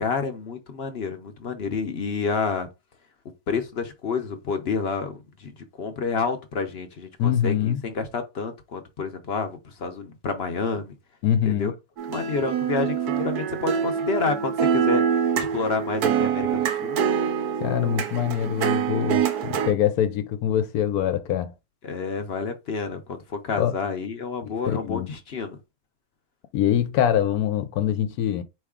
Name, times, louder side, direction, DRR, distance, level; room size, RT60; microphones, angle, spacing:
voice 1, 0.0-2.7 3.5-5.5 5.8-11.0 11.5-11.7 12.1-15.0 15.3-17.0 21.8-25.6, left 5 dB, 50° left, 0.8 m, -29 dB
voice 2, 7.2-7.8 11.2-11.7 17.6-21.5 23.5-23.7 24.4-25.1 26.5-28.4, left 10 dB, 80° left, 1.1 m, -24 dB
sound 1, 12.0-19.7, right 8 dB, 90° right, 1.3 m, -25 dB
4.6 x 3.1 x 3.6 m
omnidirectional pair, 1.6 m